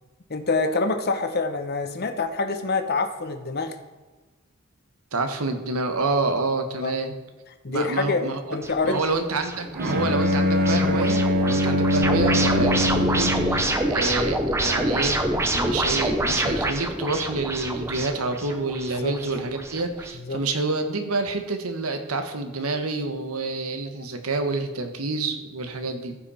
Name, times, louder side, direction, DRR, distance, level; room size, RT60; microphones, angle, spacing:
voice 1, 0.3-3.8 6.8-6.9 7.6-8.3 8.5-9.0 19.0-19.2 20.2-20.4, left 3 dB, 50° left, 7 dB, 0.9 m, -26 dB
voice 2, 5.1-7.1 7.7-8.6 8.8-15.2 15.5-26.2, right 3 dB, 85° right, 7 dB, 1.3 m, -28 dB
sound 1, 8.6-20.1, right 1 dB, 10° right, 0.7 m, -27 dB
Bowed string instrument, 9.7-13.8, left 1 dB, 45° right, 1.2 m, -22 dB
14.5 x 5.8 x 4.2 m, 1.2 s
head